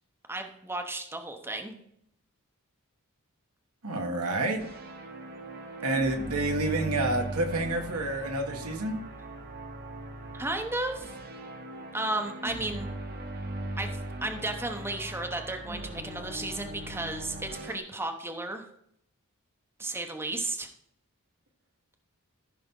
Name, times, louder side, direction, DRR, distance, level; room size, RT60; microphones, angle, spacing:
voice 1, 0.3-1.8 10.3-11.1 11.9-12.9 13.8-13.9 14.2-18.6 19.8-20.7, right 2 dB, 10° right, 4 dB, 0.9 m, -33 dB
voice 2, 3.8-4.6 5.8-9.0, right 2 dB, 80° right, 2 dB, 1.8 m, -29 dB
sound 1, 4.6-17.8, right 1 dB, 45° right, 1.2 m, -39 dB
14.0 x 5.8 x 3.8 m, 0.72 s
head